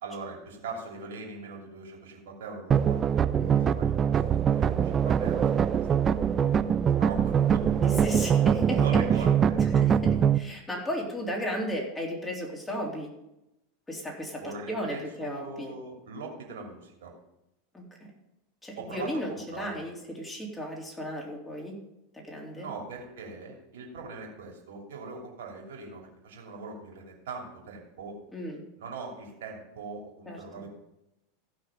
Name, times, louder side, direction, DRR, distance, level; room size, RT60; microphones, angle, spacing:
voice 1, 0.0-3.0 3.4-6.5 6.8-7.7 8.1-8.3 8.8-9.6 14.4-17.1 18.8-19.9 22.5-28.2 28.8-30.7, right 4 dB, 65° right, -1 dB, 2.9 m, -41 dB
sound 1, 2.7-10.4, right 8 dB, 30° right, 0.5 m, -23 dB
voice 2, 7.8-8.8 9.6-13.1 13.9-15.7 17.7-17.8 18.6-21.8 22.1-22.7 28.3-28.6 30.3-30.7, equal, 15° left, -1 dB, 3.5 m, -35 dB
15.5 x 6.0 x 5.2 m, 0.87 s
figure-of-eight pair, 85°, 0 cm